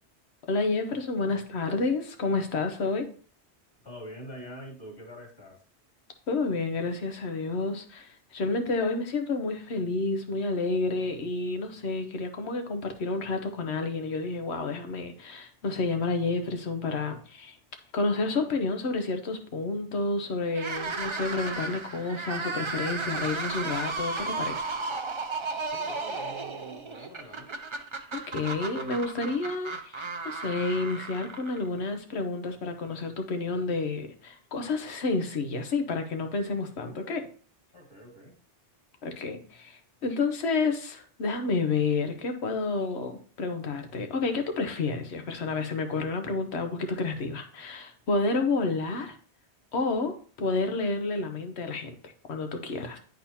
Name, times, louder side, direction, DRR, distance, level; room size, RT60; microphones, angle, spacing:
voice 1, 0.5-3.1 6.3-17.6 17.9-24.7 28.1-37.3 39.0-49.2 49.7-53.0, left 3 dB, 70° left, 6 dB, 1.2 m, -30 dB
voice 2, 3.8-5.6 25.7-27.6 37.7-38.4, equal, 50° left, -2 dB, 2.2 m, -45 dB
sound 1, 20.5-31.8, right 3 dB, 35° right, 0.6 m, -34 dB
10.0 x 4.0 x 2.8 m, 0.43 s
omnidirectional pair, 1.2 m